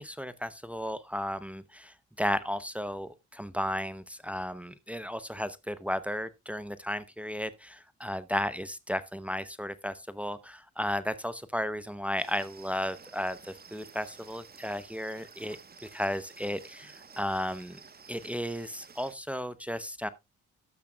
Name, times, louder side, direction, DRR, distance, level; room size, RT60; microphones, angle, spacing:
voice 1, 0.0-17.8 18.1-20.1, equal, 5° right, 0.7 m, -34 dB
sound 1, 12.2-19.2, right 5 dB, 30° right, 1.1 m, -52 dB
12.5 x 8.3 x 2.3 m
cardioid pair, 90°, 30 cm